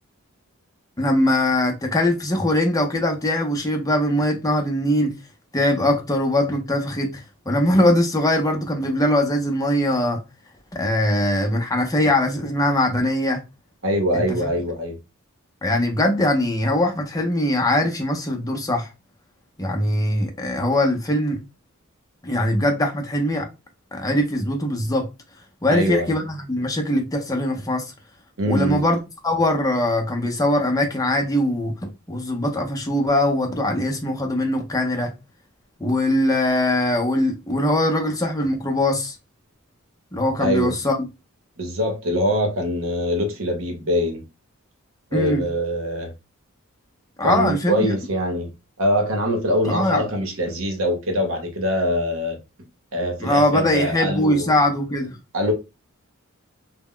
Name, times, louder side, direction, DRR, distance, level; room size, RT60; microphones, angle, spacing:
voice 1, 1.0-5.1 5.5-10.2 10.7-13.4 14.1-14.5 15.6-18.9 19.6-21.4 22.2-23.5 23.9-25.1 25.6-27.9 28.5-35.1 35.8-39.2 40.1-41.0 45.1-45.4 47.2-47.9 49.6-50.1 53.2-55.2, left 1 dB, 15° left, 0.6 m, -21 dB
voice 2, 13.8-15.0 25.7-26.1 28.4-28.8 40.4-40.7 41.6-44.2 45.1-46.1 47.2-48.5 48.8-52.4 52.9-54.5 55.3-55.5, equal, 65° right, 0.8 m, -23 dB
2.1 x 2.1 x 3.6 m
head